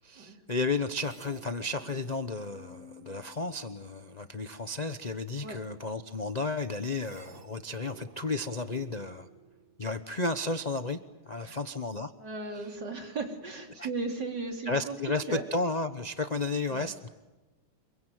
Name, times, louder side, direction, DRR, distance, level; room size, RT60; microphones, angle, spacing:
voice 1, 0.0-9.3 9.8-11.0 11.3-12.1 13.8-13.9 14.7-17.1, left 3 dB, 30° left, 8 dB, 0.8 m, -33 dB
sound 1, 0.9-4.1 6.9-10.1, right 3 dB, 40° right, 1.6 m, -53 dB
voice 2, 12.2-15.5 16.7-16.9, right 3 dB, 55° right, 3 dB, 4.1 m, -36 dB
27.0 x 23.5 x 9.2 m, 1.1 s
omnidirectional pair, 2.2 m